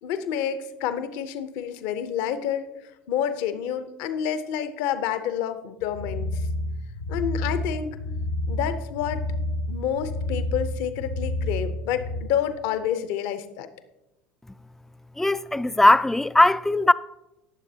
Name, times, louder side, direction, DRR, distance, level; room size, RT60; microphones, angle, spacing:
voice 1, 0.0-6.5 7.1-8.0 8.5-9.3 9.7-13.7, left 9 dB, 65° left, 0.8 m, -29 dB
sound 1, 5.8-12.2, left 1 dB, 85° left, 1.1 m, -30 dB
voice 2, 15.2-16.9, left 2 dB, 5° left, 0.3 m, -19 dB
19.0 x 7.2 x 2.8 m
hypercardioid pair, 80°, 6 cm